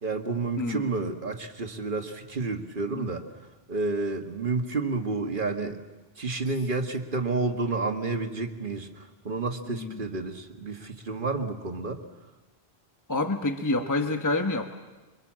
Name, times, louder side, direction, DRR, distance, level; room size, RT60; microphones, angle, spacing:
voice 1, 0.0-3.2 3.7-5.8 6.2-12.0, right 3 dB, 55° right, 5 dB, 1.8 m, -30 dB
voice 2, 9.7-10.0 13.1-14.7, left 2 dB, 20° left, 6 dB, 1.1 m, -28 dB
26.0 x 23.5 x 7.5 m, 1.2 s
omnidirectional pair, 1.1 m